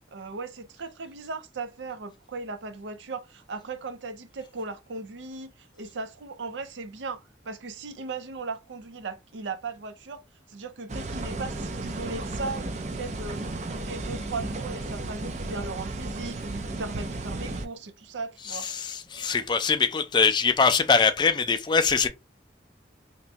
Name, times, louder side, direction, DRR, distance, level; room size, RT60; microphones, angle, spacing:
voice 1, 0.1-10.2 10.5-13.4 13.7-18.7, right 3 dB, 90° right, 0.5 m, -37 dB
sound 1, 10.9-17.7, right 2 dB, 40° right, 0.5 m, -34 dB
voice 2, 18.6-22.1, left 5 dB, 25° left, 0.3 m, -22 dB
2.9 x 2.6 x 3.3 m
head